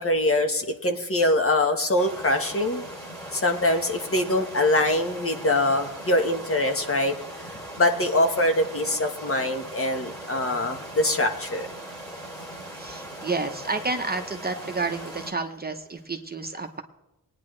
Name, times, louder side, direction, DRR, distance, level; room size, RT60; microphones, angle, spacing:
voice 1, 0.0-2.8 3.3-7.1 7.8-11.7, left 1 dB, 35° left, 5 dB, 1.4 m, -23 dB
sound 1, 2.0-15.3, right 1 dB, 10° left, 2.5 m, -39 dB
voice 2, 12.7-16.8, right 3 dB, 25° right, 5 dB, 0.9 m, -30 dB
20.5 x 9.7 x 3.2 m, 0.92 s
wide cardioid pair, 115°, 37 cm